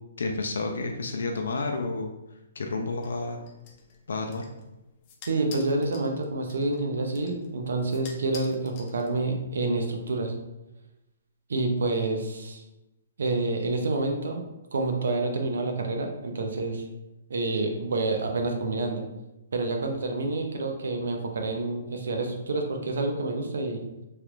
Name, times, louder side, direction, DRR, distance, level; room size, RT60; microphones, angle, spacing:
voice 1, 0.2-2.1 2.6-3.4 4.1-4.4, left 3 dB, 90° left, 3 dB, 0.4 m, -30 dB
sound 1, 3.0-9.5, left 5 dB, 25° left, 0.4 m, -49 dB
voice 2, 5.3-10.3 11.5-12.6 13.2-14.4 14.7-16.8 17.3-19.0 19.5-23.8, right 2 dB, 80° right, 3 dB, 0.6 m, -28 dB
3.1 x 2.4 x 3.0 m, 0.96 s
hypercardioid pair, 170°, 0 cm